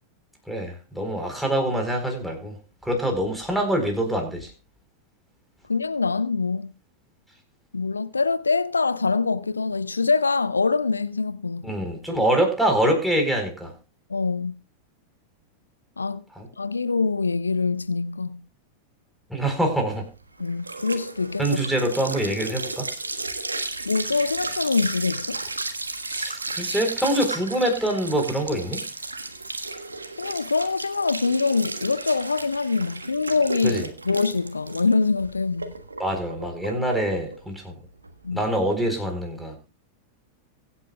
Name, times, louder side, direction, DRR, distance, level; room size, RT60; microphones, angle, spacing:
voice 1, 0.5-2.5 2.8-4.5 11.6-13.7 16.4-16.5 19.3-20.0 21.4-22.9 26.1-28.8 33.6-33.9 36.0-37.7 38.3-39.6, right 1 dB, ahead, 4.2 m, -25 dB
voice 2, 5.7-6.7 7.7-11.7 14.1-14.6 16.0-16.2 16.6-18.4 20.4-21.6 23.9-25.4 30.2-35.7 38.2-38.4, left 4 dB, 80° left, 0.5 m, -24 dB
sound 1, 19.6-38.7, right 3 dB, 80° right, 1.4 m, -34 dB
23.5 x 8.7 x 2.4 m
figure-of-eight pair, 90°, 0 cm